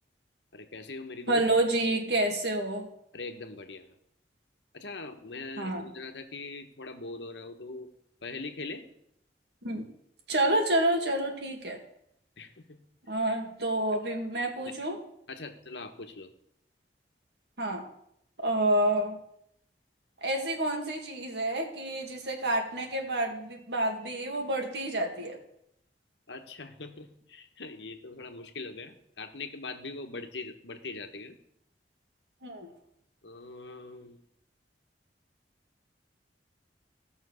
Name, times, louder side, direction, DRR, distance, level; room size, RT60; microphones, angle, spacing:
voice 1, 0.5-1.4 3.1-3.9 4.7-7.9 8.2-8.8 12.4-12.8 14.7-14.8 15.3-16.3 26.3-31.4 33.2-34.2, left 3 dB, 80° left, 6 dB, 1.3 m, -41 dB
voice 2, 1.3-2.9 5.6-5.8 9.6-9.9 10.3-11.8 13.1-15.0 17.6-17.8 18.4-19.2 20.2-25.4 32.4-32.7, right 1 dB, 70° right, 2 dB, 2.2 m, -28 dB
15.5 x 6.3 x 6.4 m, 0.75 s
head